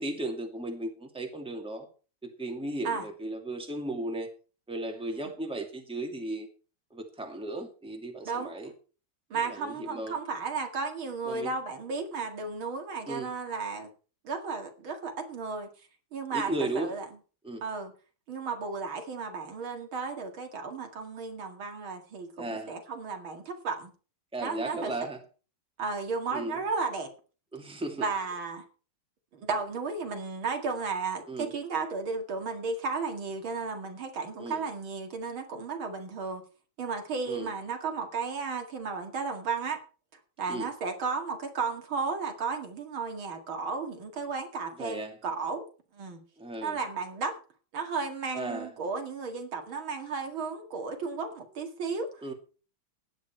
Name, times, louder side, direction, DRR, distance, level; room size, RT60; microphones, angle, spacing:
voice 1, 0.0-1.9 2.2-4.3 4.7-6.5 6.9-8.7 9.3-10.2 11.3-11.5 13.1-13.3 16.3-16.9 17.4-17.6 22.4-22.7 24.3-25.2 26.3-26.6 27.5-28.0 31.3-31.5 34.4-34.6 37.3-37.5 40.5-40.7 44.8-45.2 46.4-46.8 48.3-48.7 52.2-52.3, right 2 dB, 5° right, 2 dB, 2.2 m, -35 dB
voice 2, 8.2-8.5 9.3-13.9 14.2-15.7 16.1-17.1 17.6-17.9 18.3-23.9 24.4-24.9 25.8-27.1 28.0-28.6 29.3-36.4 36.8-39.8 40.4-45.6 45.9-46.2 46.6-47.3 47.7-52.2, right 4 dB, 75° right, 4 dB, 2.9 m, -34 dB
16.0 x 10.5 x 4.5 m, 0.37 s
omnidirectional pair, 2.3 m